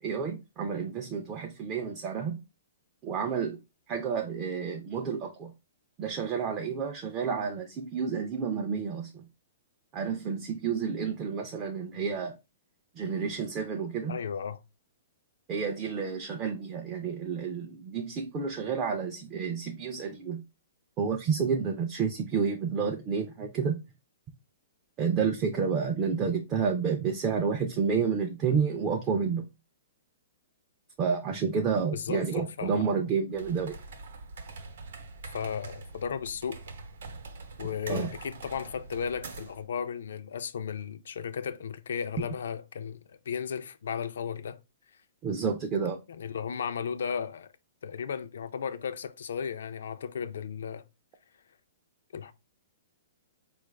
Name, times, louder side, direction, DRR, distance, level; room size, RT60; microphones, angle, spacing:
voice 1, 0.0-2.4 3.0-3.6 3.9-5.5 6.0-9.3 9.9-12.3 13.0-14.2 15.5-20.4 21.0-23.8 25.0-29.4 31.0-33.8 37.9-38.1 45.2-46.0, right 6 dB, 20° right, 0.4 m, -30 dB
voice 2, 14.1-14.6 31.9-32.8 35.3-36.6 37.6-44.6 46.2-47.5 47.8-50.8 52.1-52.3, left 7 dB, 70° left, 0.4 m, -35 dB
sound 1, 33.3-39.6, right 3 dB, 65° right, 0.7 m, -44 dB
4.5 x 2.4 x 3.1 m
hypercardioid pair, 170°, 0 cm